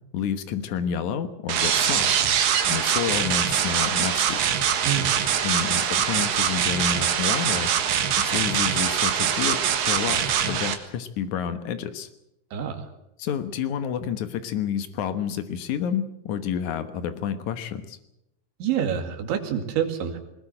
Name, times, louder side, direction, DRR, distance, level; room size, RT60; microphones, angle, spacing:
voice 1, 0.1-2.2 2.7-4.4 5.4-7.7 8.2-9.6 9.9-10.2 10.4-12.1 13.2-18.0, left 8 dB, 75° left, 10 dB, 1.7 m, -29 dB
sound 1, 1.5-10.7, right 8 dB, 60° right, 2.9 m, -23 dB
voice 2, 12.5-12.9 18.6-20.2, right 9 dB, 80° right, 5 dB, 4.7 m, -27 dB
20.5 x 20.5 x 7.8 m, 0.83 s
omnidirectional pair, 5.3 m